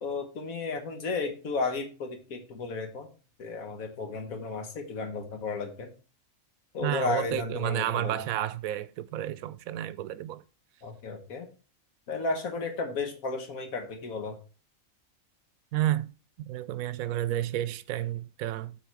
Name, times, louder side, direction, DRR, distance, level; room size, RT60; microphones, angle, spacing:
voice 1, 0.0-3.1 3.4-5.9 6.7-8.2 10.8-11.5 12.1-14.4, left 4 dB, 85° left, 1.7 m, -33 dB
voice 2, 6.8-10.4 15.7-16.1 16.4-18.8, right 13 dB, 85° right, 1.0 m, -31 dB
8.7 x 4.8 x 4.6 m
omnidirectional pair, 1.4 m